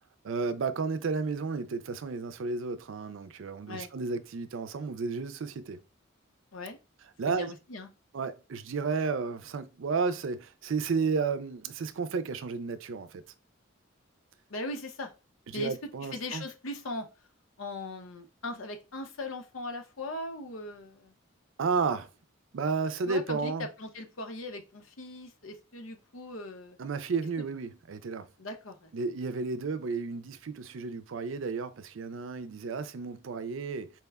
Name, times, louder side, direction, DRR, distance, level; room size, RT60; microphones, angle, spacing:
voice 1, 0.2-5.8 7.2-7.5 8.1-13.2 15.5-16.4 21.6-22.1 22.5-23.7 26.8-28.3 28.9-33.9, right 4 dB, 65° right, 0.4 m, -32 dB
voice 2, 7.3-7.9 14.5-15.1 15.5-15.7 16.1-17.1 17.6-21.1 23.1-26.8 28.4-28.9, left 2 dB, 80° left, 0.8 m, -39 dB
4.5 x 2.2 x 3.4 m
head